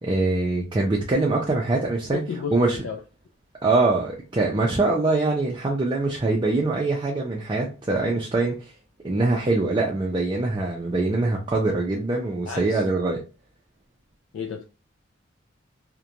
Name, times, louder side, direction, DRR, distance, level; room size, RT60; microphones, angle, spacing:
voice 1, 0.0-2.2 2.5-2.8 3.6-8.6 9.0-13.2, right 2 dB, 25° right, 0.4 m, -23 dB
voice 2, 2.1-3.0 12.5-12.8 14.3-14.6, left 6 dB, 70° left, 0.3 m, -32 dB
2.4 x 2.1 x 2.8 m
head